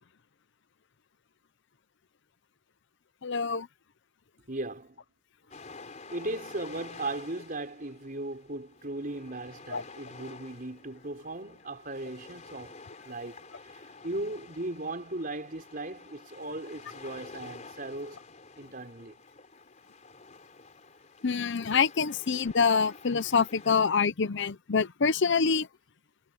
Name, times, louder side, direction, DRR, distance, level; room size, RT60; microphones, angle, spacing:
voice 1, 3.2-3.7 9.7-9.8 21.2-25.7, left 5 dB, 55° left, 0.7 m, -26 dB
voice 2, 4.5-5.0 6.1-12.8 13.0-13.4 13.7-18.2 18.6-19.2, right 2 dB, 40° right, 4.6 m, -37 dB
sound 1, 5.5-23.7, left 3 dB, 35° left, 4.6 m, -50 dB
head